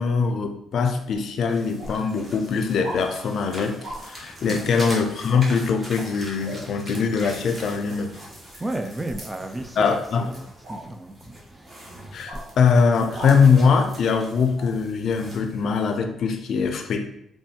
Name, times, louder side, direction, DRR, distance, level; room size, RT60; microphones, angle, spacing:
voice 1, 0.0-3.8 4.0-8.2 9.8-10.3 12.1-17.1, left 5 dB, 65° left, 6 dB, 0.3 m, -22 dB
sound 1, 1.1-1.2 1.8-2.0 2.8-3.0 3.8-4.0 6.4-6.6 9.0-9.3 10.6-10.8 12.3-12.5 13.1-13.4 14.6-14.7, right 1 dB, 75° right, 0.9 m, -36 dB
sound 2, 1.5-16.0, right 1 dB, 30° right, 0.9 m, -41 dB
voice 2, 8.6-11.7 12.0-12.2, right 1 dB, 15° right, 5 dB, 0.3 m, -34 dB
3.1 x 2.2 x 2.8 m, 0.75 s
cardioid pair, 90°, 0 cm